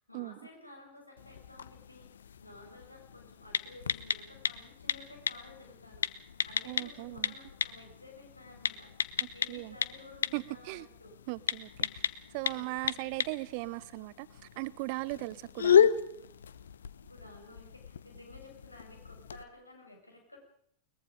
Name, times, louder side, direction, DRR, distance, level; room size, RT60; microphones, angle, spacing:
voice 1, 0.0-2.1 2.4-6.2 6.4-11.2 12.5-13.3 17.1-20.4, left 2 dB, 85° left, 7.1 m, -54 dB
sound 1, 1.2-19.4, left 8 dB, 65° left, 1.0 m, -34 dB
voice 2, 6.7-7.3 9.2-9.8 10.3-10.9 11.3-11.9 12.3-14.3 14.6-15.9, right 23 dB, 45° right, 0.9 m, -38 dB
22.5 x 22.0 x 5.3 m
figure-of-eight pair, 90°, 0 cm